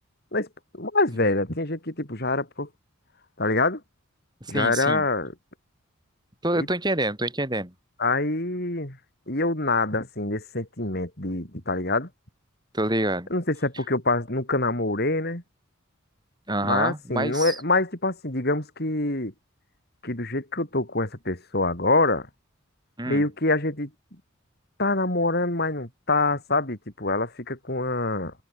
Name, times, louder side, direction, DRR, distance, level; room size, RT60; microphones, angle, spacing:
voice 1, 0.7-2.7 3.4-3.8 4.5-5.3 6.5-6.7 8.0-9.0 9.3-12.1 13.3-15.4 16.6-19.3 20.0-22.3 23.1-23.9 24.8-28.3, left 2 dB, 50° left, 4.6 m, -25 dB
voice 2, 4.4-5.0 6.4-7.7 12.7-13.3 16.5-17.6 23.0-23.3, right 1 dB, 20° right, 6.3 m, -27 dB
open air
head